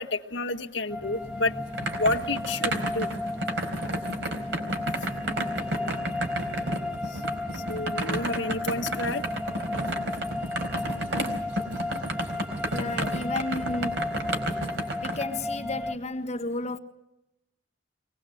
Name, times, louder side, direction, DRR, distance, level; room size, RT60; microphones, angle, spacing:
voice 1, 0.0-1.6 2.0-3.1 7.5-9.2, left 2 dB, 85° left, 1.6 m, -29 dB
sound 1, 0.9-15.9, left 2 dB, 5° right, 1.2 m, -34 dB
sound 2, 1.2-15.2, right 1 dB, 75° right, 4.2 m, -32 dB
voice 2, 12.7-14.1 15.0-16.8, left 2 dB, 40° left, 1.6 m, -32 dB
23.5 x 19.5 x 7.9 m
head